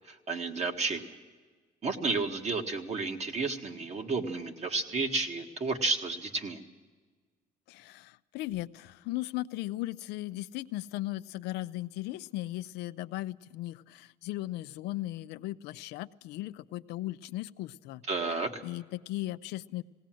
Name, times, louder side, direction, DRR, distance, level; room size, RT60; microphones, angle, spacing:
voice 1, 0.1-1.1 1.8-6.6 18.1-18.6, right 3 dB, 40° right, 4 dB, 1.8 m, -32 dB
voice 2, 7.7-18.0 18.6-19.8, left 16 dB, 90° left, 12 dB, 0.5 m, -37 dB
19.5 x 17.5 x 7.7 m, 1.4 s
cardioid pair, 110°, 17 cm